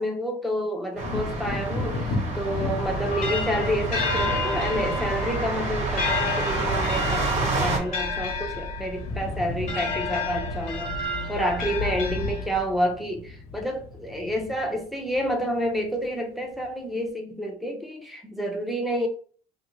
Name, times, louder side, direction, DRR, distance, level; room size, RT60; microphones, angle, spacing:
voice 1, 0.0-10.9 11.3-19.1, equal, ahead, 0.7 m, -29 dB
Wind / Thunder, 1.0-8.6 8.8-16.1 16.5-16.7, left 2 dB, 75° left, 1.0 m, -36 dB
sound 1, 1.0-7.8, right 2 dB, 40° right, 1.0 m, -29 dB
sound 2, 2.8-12.8, left 3 dB, 45° left, 1.0 m, -30 dB
3.1 x 2.4 x 3.1 m
cardioid pair, 110°, 17 cm